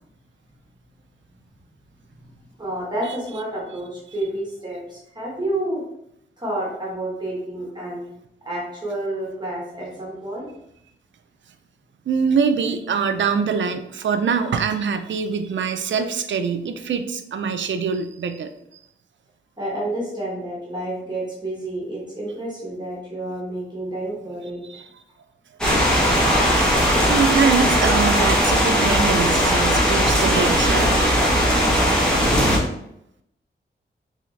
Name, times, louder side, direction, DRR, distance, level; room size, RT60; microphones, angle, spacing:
voice 1, 2.2-5.8 6.4-8.0 8.4-10.5 19.6-24.8, right 1 dB, 20° right, -6 dB, 1.2 m, -30 dB
voice 2, 12.1-18.5 24.7-24.8 27.1-30.9, right 6 dB, 65° right, 8 dB, 0.4 m, -23 dB
sound 1, 25.6-32.6, equal, 5° left, 1.0 m, -18 dB
3.7 x 3.3 x 3.1 m, 0.77 s
wide cardioid pair, 160°, 20 cm